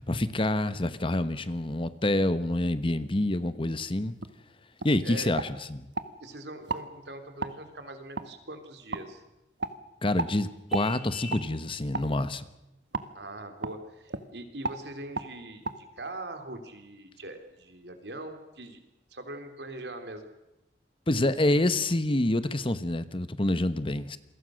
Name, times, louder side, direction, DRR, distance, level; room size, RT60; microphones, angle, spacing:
voice 1, 0.0-4.1 4.8-5.8 10.0-12.4 21.1-24.2, left 1 dB, 30° left, 13 dB, 1.1 m, -27 dB
sound 1, 4.2-4.4 4.8-4.9 5.4-6.1 6.7-6.9 7.4-7.6 8.2-8.3 8.9-9.0 9.6-9.8 10.2-10.3 10.7-10.9 11.3-11.4 11.9-12.1 12.9-13.1 13.6-13.8 14.1-14.3 14.6-14.8 15.1-15.3 15.6-15.8, right 3 dB, 85° right, 1.5 m, -33 dB
voice 2, 6.2-9.2 13.1-15.6 16.0-18.8 19.1-20.2, right 2 dB, 70° right, 6 dB, 3.4 m, -42 dB
Vehicle horn car horn honking, 10.7-11.5, left 5 dB, 5° right, 6.2 m, -42 dB
28.5 x 22.5 x 6.5 m, 0.93 s
head